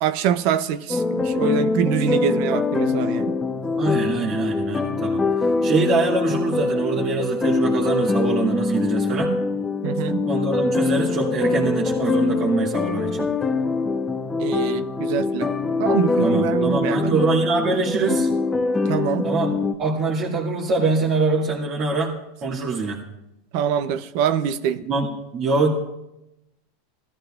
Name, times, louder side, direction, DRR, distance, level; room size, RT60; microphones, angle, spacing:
voice 1, 0.0-3.4 9.8-10.3 14.4-15.5 15.8-17.2 18.9-19.3 23.5-24.8, right 9 dB, 60° right, 0.6 m, -24 dB
sound 1, 0.9-19.7, left 3 dB, 15° left, 0.8 m, -23 dB
voice 2, 3.8-5.3 5.6-9.4 10.2-13.3 16.2-18.3 19.2-19.5 19.8-23.0 24.8-25.7, right 3 dB, 40° right, 2.0 m, -24 dB
18.0 x 13.0 x 2.5 m
hypercardioid pair, 115°, 0 cm